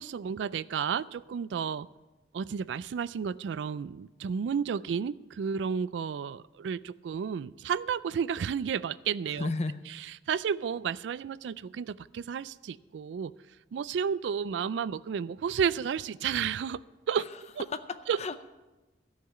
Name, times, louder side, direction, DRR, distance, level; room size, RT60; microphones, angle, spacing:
voice 1, 0.0-1.9 2.3-9.5 10.3-13.3 13.7-16.8 17.1-17.2 17.6-17.7 18.1-18.2, right 7 dB, 75° right, 18 dB, 0.3 m, -32 dB
voice 2, 9.3-9.8 17.7-18.4, left 3 dB, 35° left, 11 dB, 0.6 m, -33 dB
13.0 x 5.7 x 8.9 m, 1.1 s
head